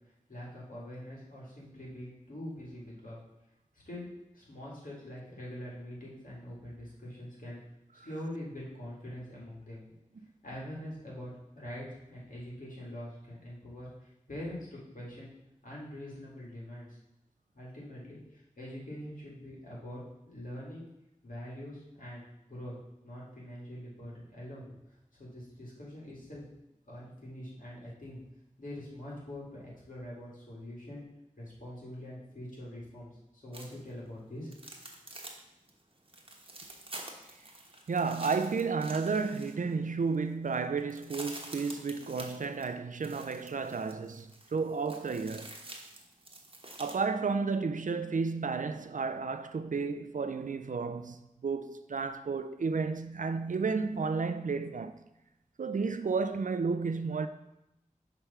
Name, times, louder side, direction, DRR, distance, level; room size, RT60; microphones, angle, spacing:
voice 1, 0.3-3.2 3.9-4.1 4.3-7.6 8.0-9.8 10.4-15.3 15.6-17.0 17.5-20.9 21.2-22.7 23.0-24.8 25.1-26.4 26.9-28.2 28.6-31.0 31.4-34.7, left 1 dB, 75° left, 2.2 m, -44 dB
sound 1, 33.5-33.9 34.5-35.4 35.7-35.8 36.1-39.8 40.1-40.2 40.5-47.0, right 2 dB, 40° right, 1.0 m, -48 dB
voice 2, 37.9-45.6 46.8-55.0 55.6-57.3, right 4 dB, 70° right, 0.4 m, -32 dB
6.0 x 3.4 x 5.5 m
wide cardioid pair, 45°, 14 cm